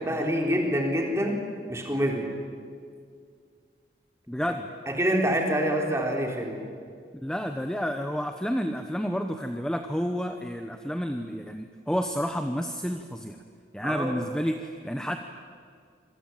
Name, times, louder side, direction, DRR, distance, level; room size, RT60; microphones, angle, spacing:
voice 1, 0.0-1.4 1.7-2.3 4.9-6.6 13.8-14.1, equal, 15° right, 1 dB, 3.9 m, -26 dB
voice 2, 4.3-4.7 7.2-13.4 13.7-15.2, equal, 5° left, 6 dB, 0.9 m, -30 dB
27.5 x 23.0 x 9.1 m, 2.1 s
head